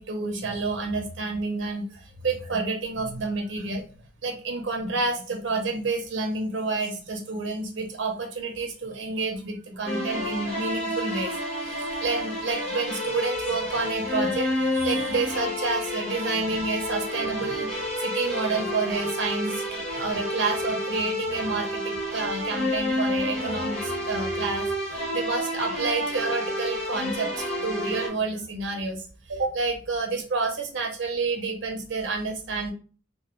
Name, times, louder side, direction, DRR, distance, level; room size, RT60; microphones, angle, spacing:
voice 1, 0.0-3.8 4.2-11.3 11.6-17.7 18.0-24.7 25.1-27.3 27.6-32.7, right 3 dB, 65° right, 3 dB, 0.6 m, -29 dB
sound 1, 9.8-28.1, left 1 dB, 5° left, 0.9 m, -30 dB
2.2 x 2.1 x 2.9 m, 0.39 s
head